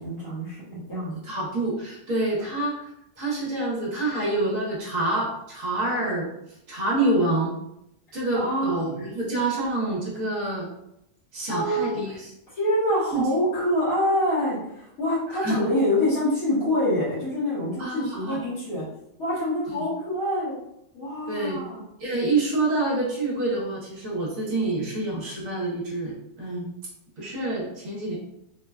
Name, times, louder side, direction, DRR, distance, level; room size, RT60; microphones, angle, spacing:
voice 1, 0.0-1.2 8.3-8.8 11.5-12.2 12.5-18.8 19.2-20.5 20.9-21.8, left 1 dB, 65° left, -11 dB, 1.5 m, -26 dB
voice 2, 1.2-2.9 3.2-6.3 6.7-7.5 8.1-10.7 11.3-12.1 13.1-13.2 15.4-15.6 17.8-18.4 21.3-21.6 22.0-26.1 26.4-26.7 27.2-28.2, right 2 dB, 60° right, -4 dB, 1.2 m, -27 dB
3.8 x 2.1 x 2.3 m, 0.80 s
omnidirectional pair, 1.7 m